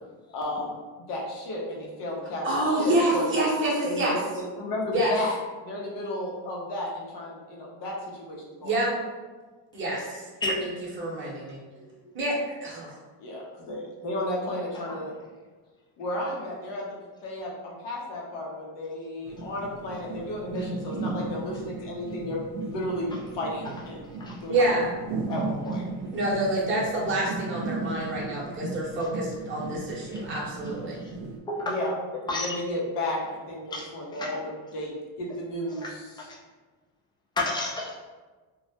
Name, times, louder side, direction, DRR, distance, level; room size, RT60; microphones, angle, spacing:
voice 1, 0.3-3.3 3.8-5.4 5.6-8.9 11.7-11.8 13.2-15.1 16.0-24.1 24.4-24.5 25.3-25.8 31.6-31.9 32.3-36.0, left 1 dB, 65° left, -2 dB, 0.8 m, -33 dB
voice 2, 2.4-4.1 4.9-5.1 8.6-8.9 9.7-10.2 11.0-11.6 12.1-12.9 24.5-24.8 26.1-30.9, right 1 dB, 25° right, -5 dB, 0.8 m, -27 dB
sound 1, 19.3-31.4, right 3 dB, 65° right, 0.6 m, -36 dB
voice 3, 33.7-34.4 35.8-35.9 36.2-36.4 37.4-38.0, left 2 dB, 10° left, -3 dB, 0.3 m, -31 dB
2.3 x 2.0 x 2.7 m, 1.3 s
cardioid pair, 105°, 46 cm